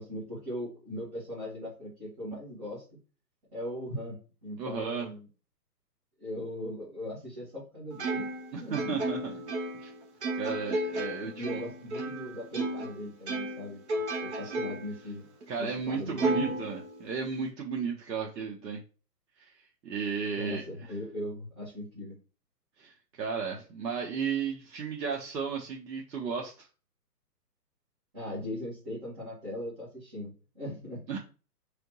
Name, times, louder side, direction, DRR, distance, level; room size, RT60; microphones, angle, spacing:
voice 1, 0.0-2.8 3.5-5.3 6.2-8.3 8.6-9.0 9.2-9.4 11.2-13.8 14.2-15.2 15.6-16.6 20.3-22.1 28.1-31.0, left 1 dB, 20° right, -10 dB, 1.5 m, -39 dB
voice 2, 4.6-5.1 8.5-9.2 9.7-9.9 10.3-11.6 15.5-18.8 19.4-19.6 19.8-20.6 22.8-26.7 31.1-31.2, right 6 dB, 85° right, -1 dB, 1.0 m, -34 dB
Plucked string instrument, 8.0-12.9 13.3-15.0 15.4-15.5 16.2-17.3, right 1 dB, 40° right, 1.0 m, -33 dB
3.8 x 3.4 x 2.9 m, 0.35 s
hypercardioid pair, 170°, 49 cm